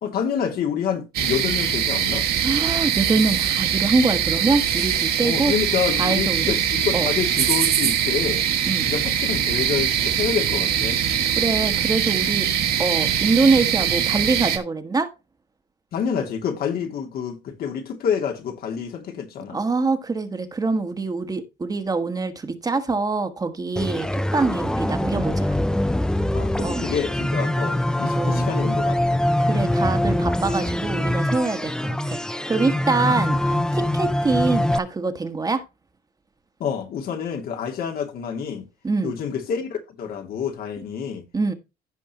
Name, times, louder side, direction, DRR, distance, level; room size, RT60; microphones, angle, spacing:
voice 1, 0.0-2.3 5.2-8.4 8.8-11.0 15.9-19.6 26.3-29.2 33.0-33.2 36.6-38.6 39.0-41.2, left 7 dB, 60° left, 2.5 m, -28 dB
sound 1, 1.1-14.6, right 9 dB, 65° right, 2.2 m, -22 dB
voice 2, 2.4-5.5 6.0-6.5 6.9-7.1 8.6-8.9 11.4-12.5 12.8-15.1 19.5-25.5 26.6-26.9 28.1-28.5 29.4-35.6 38.8-39.1 41.3-41.5, right 3 dB, 20° right, 1.5 m, -24 dB
sound 2, 23.8-34.8, left 1 dB, 5° left, 0.6 m, -23 dB
15.5 x 5.3 x 3.0 m
cardioid pair, 110°, 17 cm